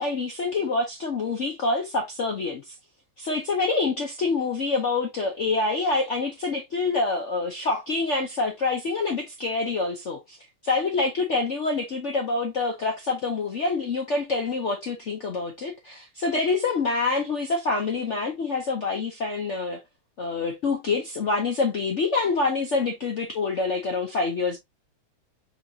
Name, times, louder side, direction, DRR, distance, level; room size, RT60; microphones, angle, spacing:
voice 1, 0.0-2.7 3.2-10.4 10.6-19.8 20.2-24.6, left 3 dB, 80° left, 0.6 m, -26 dB
5.6 x 2.8 x 2.7 m
omnidirectional pair, 2.3 m